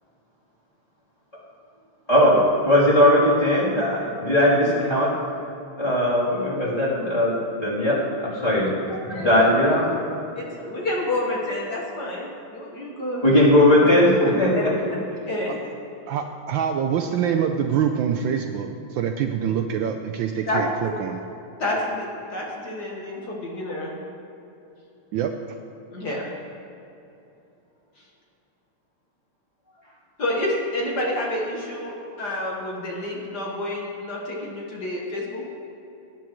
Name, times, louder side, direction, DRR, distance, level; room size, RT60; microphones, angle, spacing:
voice 1, 2.1-5.1 5.8-8.7 9.0-9.9 13.2-14.7, left 1 dB, 15° left, -8 dB, 3.2 m, -19 dB
voice 2, 8.9-9.3 10.4-13.2 14.5-14.6 15.3-15.5 20.5-20.6 21.6-23.9 25.9-26.3 30.2-35.4, left 1 dB, 50° left, -3 dB, 1.9 m, -29 dB
voice 3, 16.1-21.2 25.1-25.3, right 8 dB, 75° right, 5 dB, 1.2 m, -25 dB
18.5 x 10.0 x 3.1 m, 2.9 s
omnidirectional pair, 2.4 m